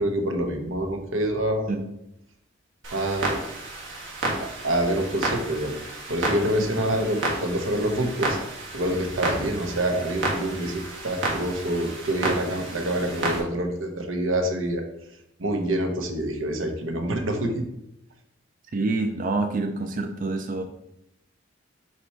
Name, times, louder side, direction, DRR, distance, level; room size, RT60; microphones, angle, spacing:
voice 1, 0.0-1.7 2.9-3.5 4.4-8.4 8.7-14.8 15.4-17.6, right 1 dB, 90° right, 4 dB, 1.0 m, -26 dB
Clock, 2.8-13.4, right 2 dB, 70° right, 1.7 m, -31 dB
voice 2, 18.7-20.6, right 3 dB, 45° right, 5 dB, 0.5 m, -27 dB
7.5 x 3.0 x 4.6 m, 0.82 s
head